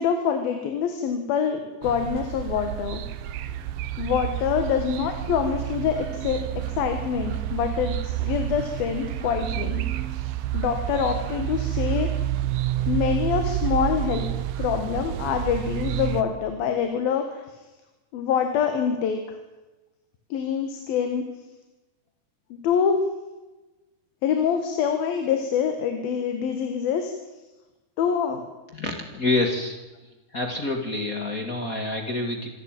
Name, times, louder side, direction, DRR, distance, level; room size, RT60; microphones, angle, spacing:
voice 1, 0.0-3.0 4.0-6.4 6.7-9.8 10.5-12.1 12.9-14.3 14.6-17.4 18.1-19.2 20.3-21.2 22.5-23.0 24.2-27.1 28.0-28.4, left 7 dB, 85° left, 6 dB, 3.5 m, -25 dB
sound 1, 1.8-16.2, right 14 dB, 80° right, 2.6 m, -29 dB
voice 2, 28.7-29.8 30.3-32.5, left 2 dB, 30° left, 4 dB, 1.9 m, -27 dB
26.0 x 13.0 x 9.0 m, 1.1 s
omnidirectional pair, 4.1 m